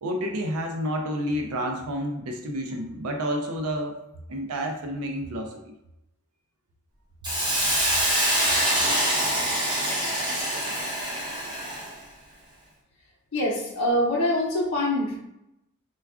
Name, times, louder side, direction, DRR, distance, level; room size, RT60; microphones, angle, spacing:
voice 1, 0.0-4.0 4.3-5.7, equal, 75° right, 3 dB, 0.4 m, -30 dB
Hiss, 7.2-12.0, right 1 dB, 20° right, 0.8 m, -25 dB
voice 2, 13.3-15.2, left 1 dB, 70° left, -5 dB, 0.7 m, -24 dB
4.3 x 2.3 x 2.3 m, 0.86 s
head